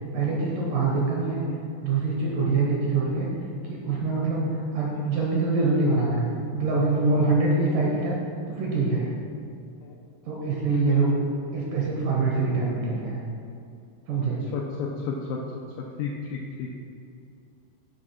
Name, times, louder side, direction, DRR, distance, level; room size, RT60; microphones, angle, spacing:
voice 1, 0.1-1.4 1.8-3.3 3.7-6.2 6.5-8.2 8.5-9.1 10.3-11.1 11.5-13.2 14.1-14.4, right 3 dB, 70° right, -3 dB, 2.2 m, -24 dB
voice 2, 10.7-11.2 14.5-15.4 16.0-16.7, left 6 dB, 85° left, -1 dB, 2.0 m, -32 dB
9.7 x 3.6 x 6.2 m, 2.5 s
omnidirectional pair, 4.7 m